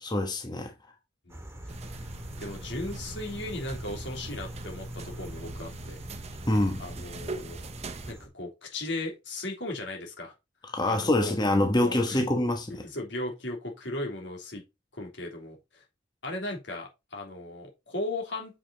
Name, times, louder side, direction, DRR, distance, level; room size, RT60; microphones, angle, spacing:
voice 1, 0.0-0.7 6.5-6.9 10.7-12.8, left 1 dB, 25° left, 1.2 m, -25 dB
sound 1, 1.3-8.3, right 1 dB, 15° right, 2.0 m, -44 dB
sound 2, 1.7-8.1, right 2 dB, 35° right, 0.8 m, -41 dB
voice 2, 2.4-6.0 6.8-7.6 8.1-10.3 10.8-11.3 11.8-12.3 12.7-14.6 14.9-15.8 16.2-18.6, left 2 dB, 75° left, 3.1 m, -37 dB
7.3 x 5.4 x 4.0 m
head